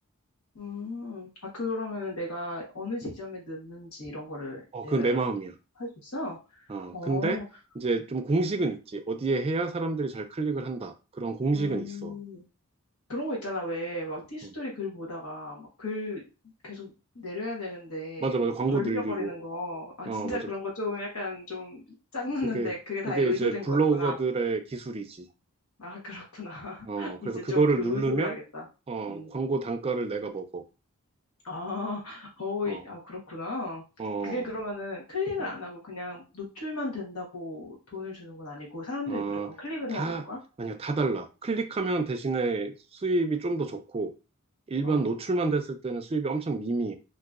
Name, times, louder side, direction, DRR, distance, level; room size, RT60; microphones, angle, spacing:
voice 1, 0.5-5.2 5.8-6.6 6.9-7.4 11.5-12.4 13.1-21.8 22.1-24.2 25.8-28.6 29.0-29.3 31.4-33.8 34.2-40.4 44.8-45.1, left 2 dB, 75° left, 1.2 m, -35 dB
voice 2, 4.7-5.5 6.7-7.4 7.8-12.1 18.2-19.3 20.1-20.4 22.5-22.7 23.0-25.3 26.9-28.3 28.9-30.6 32.7-32.8 34.0-34.4 35.4-35.5 39.1-39.5 39.9-40.2 40.6-44.1 44.7-47.0, right 3 dB, 25° right, 0.3 m, -28 dB
3.8 x 2.6 x 2.4 m
head